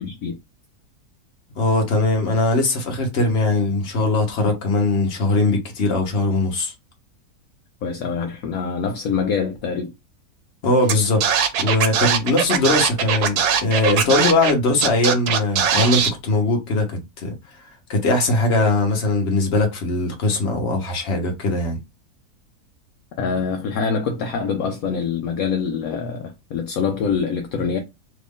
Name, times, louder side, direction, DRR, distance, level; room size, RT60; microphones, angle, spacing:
voice 1, 0.0-0.3 7.8-9.9 23.2-27.8, left 5 dB, 70° left, 1.0 m, -25 dB
voice 2, 1.6-6.7 10.6-17.3 17.9-21.8, left 2 dB, 50° left, 1.2 m, -20 dB
Scratching (performance technique), 10.9-11.0 11.2-14.5 14.8-16.1, right 7 dB, 85° right, 1.2 m, -20 dB
3.1 x 2.5 x 3.5 m
omnidirectional pair, 1.6 m